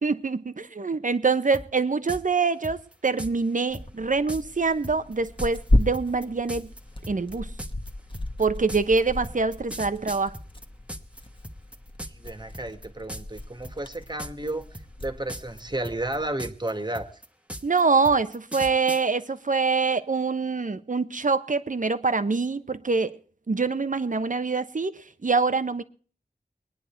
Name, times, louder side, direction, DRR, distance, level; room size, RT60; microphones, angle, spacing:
voice 1, 0.0-6.7 7.1-7.5 8.4-10.3 17.6-23.2 23.5-24.9 25.2-25.8, right 4 dB, 55° right, 1.0 m, -25 dB
sound 1, 1.5-1.7 2.1-2.2 2.6-3.3 3.7-3.9 4.3-4.4 4.8-11.2 11.4-12.3 12.5-12.8 13.1-13.4 13.6-14.5 14.7-15.6 15.8-19.0, equal, 5° right, 1.4 m, -38 dB
Tearing, 3.7-16.3, left 1 dB, 30° left, 1.6 m, -33 dB
voice 2, 12.0-17.1, right 1 dB, 30° right, 1.8 m, -32 dB
22.5 x 9.9 x 4.5 m
wide cardioid pair, 50°, 16 cm